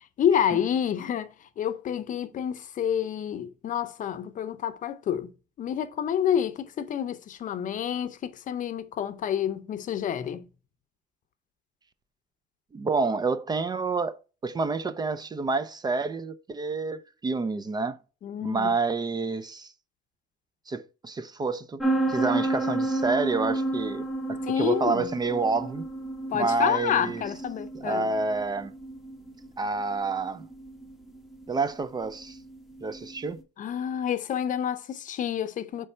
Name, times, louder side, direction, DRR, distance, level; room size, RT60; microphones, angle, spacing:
voice 1, 0.0-5.3 5.6-10.5 18.2-18.7 24.4-25.1 26.3-28.1 33.6-35.9, left 9 dB, 50° left, 0.6 m, -28 dB
voice 2, 12.7-18.0 18.4-19.7 20.7-21.8 22.1-25.8 26.3-27.2 27.7-28.7 29.6-30.5 31.5-32.4 32.8-33.4, right 4 dB, 25° right, 0.4 m, -28 dB
sound 1, 21.8-33.3, right 2 dB, ahead, 1.0 m, -32 dB
5.4 x 3.2 x 5.5 m
cardioid pair, 110°, 17 cm